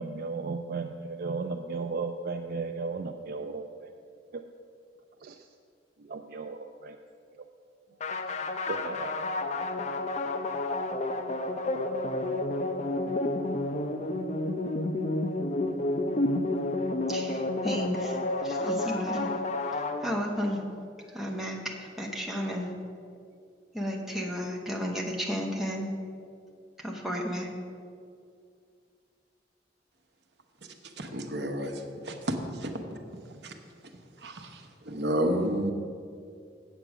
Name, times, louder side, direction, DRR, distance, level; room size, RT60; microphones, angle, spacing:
voice 1, 0.0-3.9 4.3-4.4 5.2-5.5 6.0-7.0 7.3-7.5 8.3-8.4 8.7-9.2, right 4 dB, 55° right, 5 dB, 0.4 m, -35 dB
sound 1, 8.0-20.5, left 2 dB, 40° left, 0.5 m, -30 dB
voice 2, 17.1-19.3 20.0-20.6 21.1-22.7 23.7-25.9 26.8-27.5, equal, ahead, -1 dB, 1.0 m, -33 dB
voice 3, 31.0-31.8 32.1-32.2 32.6-32.7 33.4-33.5 34.2-34.6 34.9-35.7, equal, 70° right, 4 dB, 1.0 m, -30 dB
8.0 x 7.8 x 6.0 m, 2.4 s
head